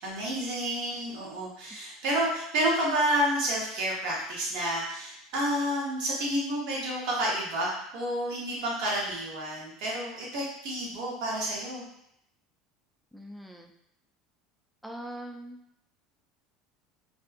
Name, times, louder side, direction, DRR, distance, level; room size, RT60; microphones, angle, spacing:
voice 1, 0.0-11.8, right 1 dB, 65° right, -4 dB, 1.0 m, -30 dB
voice 2, 13.1-13.7 14.8-15.6, right 1 dB, ahead, 2 dB, 0.3 m, -41 dB
2.6 x 2.3 x 2.5 m, 0.78 s
hypercardioid pair, 80°, 0 cm